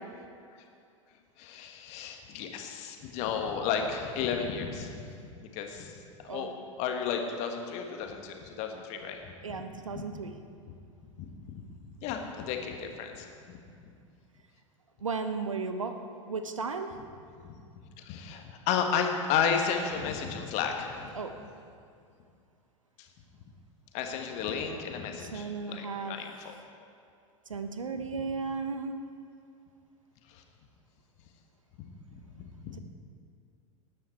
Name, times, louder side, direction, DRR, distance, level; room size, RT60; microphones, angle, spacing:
voice 1, 1.4-5.0 5.5-5.9 6.2-6.5 6.8-9.2 9.9-10.2 10.7-10.8 11.2-11.6 12.0-13.3 18.1-21.1 23.9-26.5 32.1-32.8, left 7 dB, 45° left, 4 dB, 1.6 m, -33 dB
voice 2, 9.4-10.3 15.0-15.9 16.3-16.9 21.1-21.3 25.2-26.2 27.5-29.1, right 4 dB, 75° right, 8 dB, 0.9 m, -35 dB
19.0 x 9.5 x 4.5 m, 2.4 s
figure-of-eight pair, 85°, 17 cm